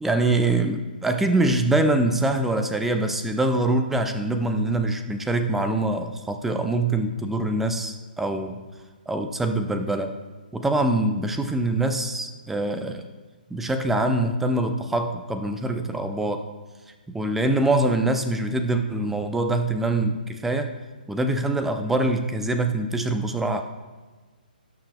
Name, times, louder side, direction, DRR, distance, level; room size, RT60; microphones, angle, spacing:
voice 1, 0.0-8.6 9.1-10.1 10.5-13.0 13.5-16.4 17.1-20.7 21.1-23.6, right 2 dB, 5° right, 7 dB, 0.5 m, -24 dB
18.0 x 6.4 x 2.3 m, 1.3 s
figure-of-eight pair, 130°, 5 cm